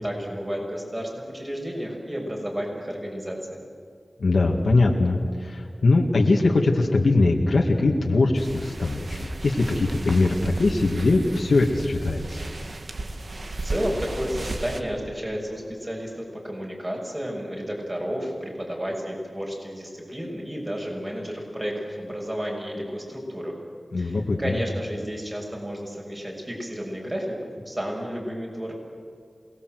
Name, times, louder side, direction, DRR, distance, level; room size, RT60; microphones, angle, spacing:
voice 1, 0.0-3.6 12.8-12.9 13.6-23.6 24.0-27.4 27.6-28.7, equal, 25° right, 0 dB, 6.7 m, -32 dB
voice 2, 4.2-12.4 23.9-24.6, left 2 dB, 85° left, 0 dB, 2.0 m, -21 dB
sound 1, 8.3-14.8, right 2 dB, 60° right, 1.7 m, -35 dB
28.0 x 19.0 x 7.9 m, 2.2 s
wide cardioid pair, 75°, 0 cm